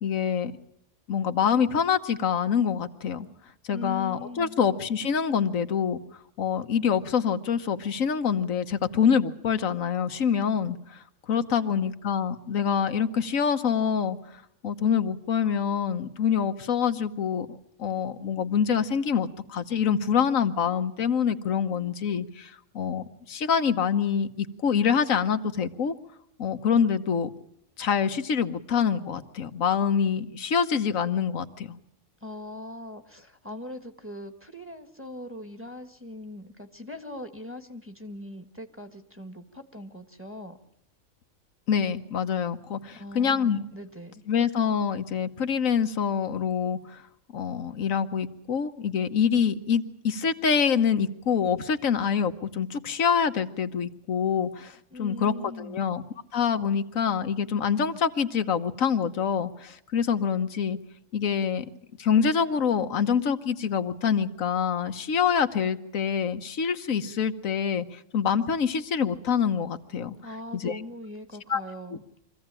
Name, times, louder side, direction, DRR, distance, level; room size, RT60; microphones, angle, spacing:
voice 1, 0.0-0.5 1.1-3.3 3.7-6.0 6.4-14.2 14.6-25.9 26.4-27.3 27.8-31.8 41.7-43.6 44.3-47.0 47.3-56.0 56.3-60.8 61.1-61.6 62.0-70.2 70.5-70.8 71.5-71.6, left 7 dB, 90° left, 9 dB, 1.5 m, -26 dB
voice 2, 3.7-4.6 11.3-11.9 32.2-40.6 42.9-44.2 54.9-55.9 70.2-72.0, left 1 dB, 10° right, 7 dB, 1.4 m, -41 dB
24.5 x 15.5 x 8.9 m, 0.75 s
omnidirectional pair, 1.3 m